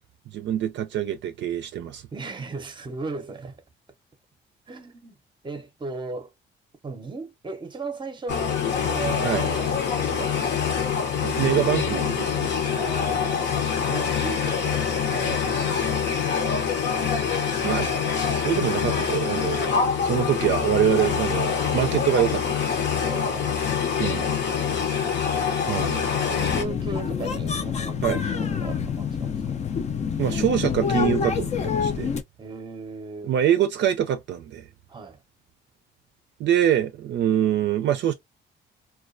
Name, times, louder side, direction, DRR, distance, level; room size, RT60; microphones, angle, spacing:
voice 1, 0.3-2.0 9.2-9.4 11.2-12.5 17.6-17.9 18.3-19.7 20.0-22.6 24.0-24.3 25.7-26.1 28.0-28.2 30.2-32.1 33.2-34.7 36.4-38.1, right 10 dB, 65° right, 0.4 m, -24 dB
voice 2, 2.1-3.6 4.7-5.2 5.4-6.3 6.8-10.8 12.7-16.4 23.0-25.3 26.2-29.8 32.4-33.3 34.9-35.2, right 3 dB, 25° right, 0.6 m, -37 dB
sound 1, 8.3-26.6, left 7 dB, 60° left, 0.7 m, -25 dB
sound 2, 26.4-32.2, left 7 dB, 35° left, 0.4 m, -27 dB
2.2 x 2.2 x 2.5 m
cardioid pair, 90°, 20 cm